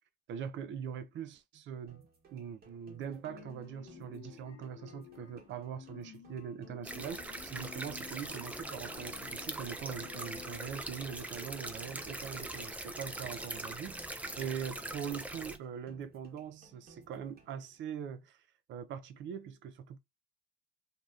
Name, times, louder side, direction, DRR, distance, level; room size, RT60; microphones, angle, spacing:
voice 1, 0.3-2.0 2.3-18.4 18.7-20.0, right 8 dB, 70° right, 0.4 m, -42 dB
sound 1, 1.9-17.9, right 3 dB, 50° right, 1.0 m, -62 dB
sound 2, 3.2-10.8, left 10 dB, 90° left, 0.4 m, -53 dB
sound 3, 6.8-15.6, right 2 dB, 5° right, 0.3 m, -42 dB
2.6 x 2.0 x 2.3 m
cardioid pair, 90°, 20 cm